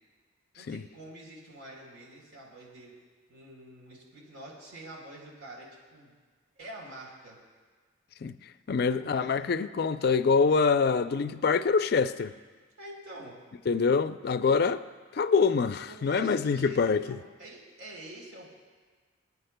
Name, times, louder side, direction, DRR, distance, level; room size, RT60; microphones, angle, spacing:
voice 1, 0.5-2.9 3.3-6.1 6.6-7.4 8.8-9.4 12.8-13.4 15.8-18.5, right 1 dB, 85° right, 3.5 m, -47 dB
voice 2, 8.7-12.3 13.7-14.8 15.1-17.2, left 5 dB, 50° left, 0.4 m, -25 dB
27.5 x 9.5 x 2.2 m
head